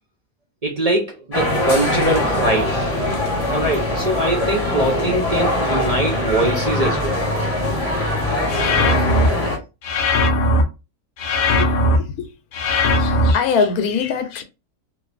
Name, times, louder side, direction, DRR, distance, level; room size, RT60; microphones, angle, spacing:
voice 1, 0.6-2.8 3.5-7.2, right 1 dB, 60° right, 0.4 m, -22 dB
sound 1, 1.3-9.6, left 1 dB, 30° left, 1.1 m, -22 dB
sound 2, 2.1-8.9, right 5 dB, 40° right, 0.7 m, -36 dB
sound 3, 8.5-9.3 9.8-10.6 11.2-12.0 12.5-13.3, left 1 dB, 70° left, 0.5 m, -18 dB
voice 2, 11.4-12.3 12.7-14.4, left 6 dB, 85° left, 1.1 m, -23 dB
2.8 x 2.6 x 3.2 m
omnidirectional pair, 1.5 m